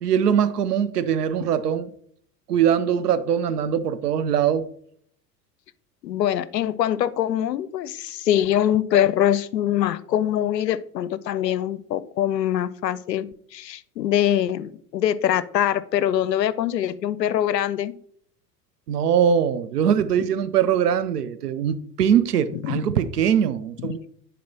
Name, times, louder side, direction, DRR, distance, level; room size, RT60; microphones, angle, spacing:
voice 1, 0.0-1.9 2.5-4.7 18.9-24.0, right 8 dB, 70° right, 0.7 m, -22 dB
voice 2, 6.0-17.9 22.6-22.8, left 11 dB, 80° left, 0.6 m, -23 dB
10.0 x 4.2 x 2.8 m
figure-of-eight pair, 80°, 50 cm